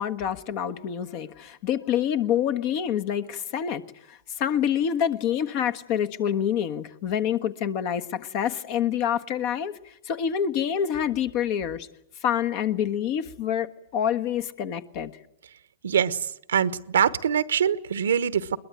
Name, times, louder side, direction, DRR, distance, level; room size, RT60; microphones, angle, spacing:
voice 1, 0.0-3.8 4.1-11.9 12.2-15.1, left 9 dB, 50° left, 10 dB, 1.4 m, -27 dB
voice 2, 15.8-16.2 16.5-18.6, right 8 dB, 80° right, 16 dB, 1.0 m, -23 dB
22.0 x 20.5 x 9.2 m, 0.78 s
hypercardioid pair, 115°, 0 cm